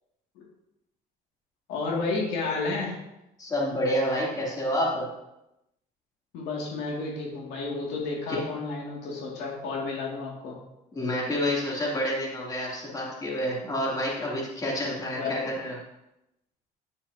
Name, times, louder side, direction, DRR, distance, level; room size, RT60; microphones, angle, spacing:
voice 1, 1.7-3.0 6.3-10.5 14.9-15.5, left 3 dB, 85° left, -3 dB, 2.3 m, -31 dB
voice 2, 3.4-5.0 8.3-8.4 10.9-15.8, equal, 20° left, -4 dB, 2.9 m, -28 dB
9.7 x 7.1 x 2.8 m, 0.90 s
cardioid pair, 110°, 17 cm